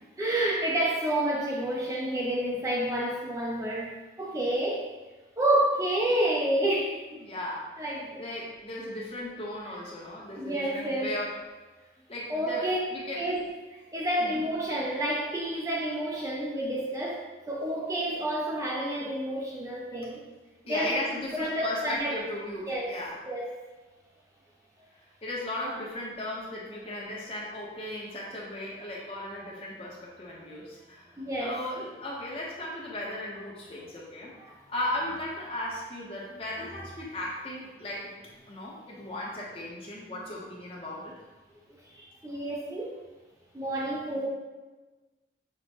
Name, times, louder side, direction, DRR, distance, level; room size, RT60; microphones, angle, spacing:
voice 1, 0.2-3.9 4.2-4.9 5.4-7.0 7.8-8.2 10.3-11.2 12.3-12.8 13.2-13.4 13.9-20.2 20.7-20.9 21.3-22.1 22.7-22.9 23.3-23.5 31.2-31.6 41.9-43.0 43.5-44.3, right 1 dB, 20° right, -3 dB, 0.4 m, -29 dB
voice 2, 7.2-11.3 12.1-13.2 14.2-14.5 20.7-23.2 25.2-34.3 34.7-38.2 38.5-41.1 44.1-44.3, left 1 dB, 35° left, -4 dB, 0.8 m, -36 dB
6.0 x 2.1 x 2.9 m, 1.2 s
head